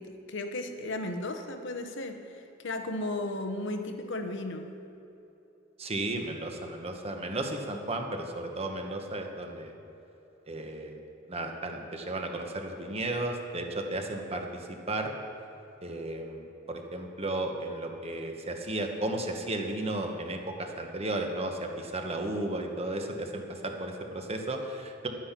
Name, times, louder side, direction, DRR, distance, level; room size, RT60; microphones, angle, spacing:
voice 1, 0.0-4.8, left 2 dB, 65° left, 6 dB, 1.0 m, -35 dB
voice 2, 5.8-9.7 10.5-10.9 11.3-15.1 15.8-25.1, right 2 dB, 30° right, 3 dB, 1.2 m, -34 dB
11.5 x 9.6 x 5.8 m, 3.0 s
head